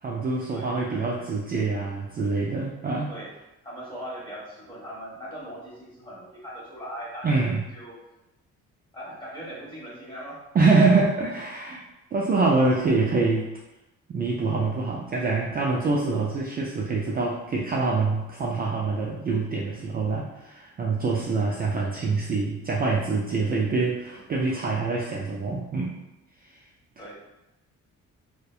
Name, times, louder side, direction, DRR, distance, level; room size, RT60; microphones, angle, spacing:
voice 1, 0.0-3.1 7.2-7.6 10.5-11.8 12.1-13.5 14.1-26.0, right 3 dB, 30° right, -4 dB, 0.4 m, -25 dB
voice 2, 0.5-1.3 3.1-3.3 3.6-8.0 8.9-10.4 24.1-24.2 24.5-24.6 25.0-25.1 27.0-27.1, equal, 15° left, -7 dB, 1.2 m, -40 dB
2.6 x 2.1 x 2.3 m, 0.94 s
cardioid pair, 90°, 30 cm